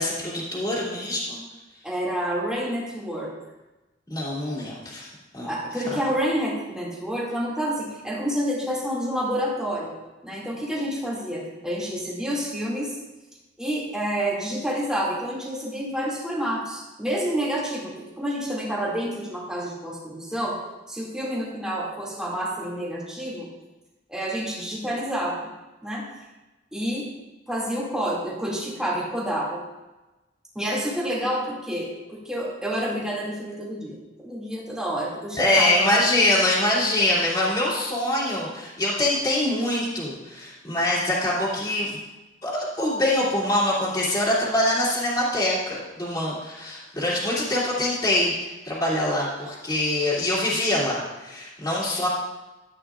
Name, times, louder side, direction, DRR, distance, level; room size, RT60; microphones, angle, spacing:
voice 1, 0.0-1.4 4.1-5.1 5.3-5.5 5.9-6.0 35.4-42.0 42.4-52.1, left 1 dB, 20° left, -8 dB, 2.7 m, -24 dB
voice 2, 1.8-3.3 5.4-9.9 10.2-13.0 13.6-20.6 20.9-23.5 24.1-25.5 25.8-26.1 26.7-27.1 27.5-29.6 30.5-35.9, equal, 5° right, -5 dB, 2.4 m, -28 dB
13.0 x 9.2 x 2.5 m, 1.1 s
head